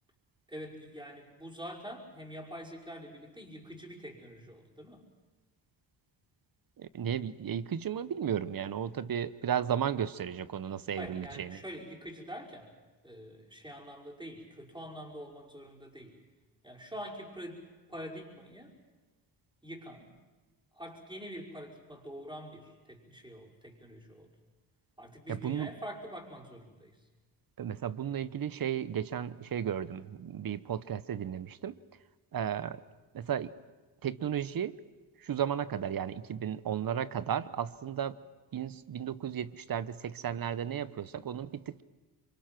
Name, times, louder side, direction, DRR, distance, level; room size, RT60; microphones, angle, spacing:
voice 1, 0.5-5.0 11.0-12.7 13.0-16.2 16.6-18.8 19.6-20.1 20.7-24.3 25.0-27.0, equal, 10° right, -1 dB, 5.4 m, -45 dB
voice 2, 6.8-11.6 25.3-25.7 27.6-31.8 32.3-32.8 33.1-33.5 34.0-34.8 35.2-38.2 38.5-41.8, right 9 dB, 50° right, 16 dB, 1.0 m, -34 dB
26.5 x 24.0 x 6.0 m, 1.3 s
cardioid pair, 65°, 46 cm